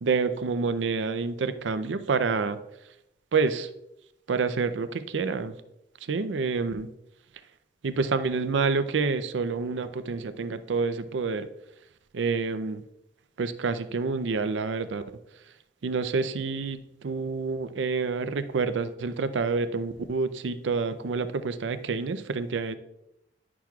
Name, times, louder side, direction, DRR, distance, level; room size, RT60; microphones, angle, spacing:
voice 1, 0.0-2.6 3.3-3.7 4.3-5.6 6.1-6.9 7.8-11.5 12.1-12.8 13.4-15.0 15.8-16.8 17.0-22.8, right 4 dB, 85° right, 11 dB, 0.5 m, -28 dB
10.0 x 6.0 x 2.3 m, 0.84 s
head